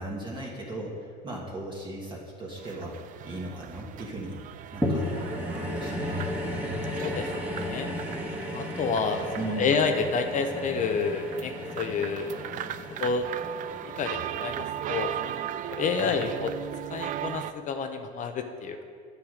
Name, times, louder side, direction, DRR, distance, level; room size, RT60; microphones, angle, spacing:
voice 1, 0.0-2.9 3.2-4.4 4.7-6.2 9.3-9.8 15.9-16.3, right 1 dB, 25° right, -3 dB, 1.6 m, -37 dB
sound 1, 2.6-17.5, right 11 dB, 45° right, 0.4 m, -38 dB
sound 2, 4.8-15.3 15.9-16.0, left 1 dB, 10° right, 1.6 m, -34 dB
voice 2, 6.7-7.9 8.5-9.2 9.6-12.3 13.0-13.2 14.0-15.1 15.7-16.5 16.9-18.8, left 5 dB, 40° left, 7 dB, 0.7 m, -29 dB
8.8 x 7.8 x 5.0 m, 2.3 s
supercardioid pair, 115°, 20 cm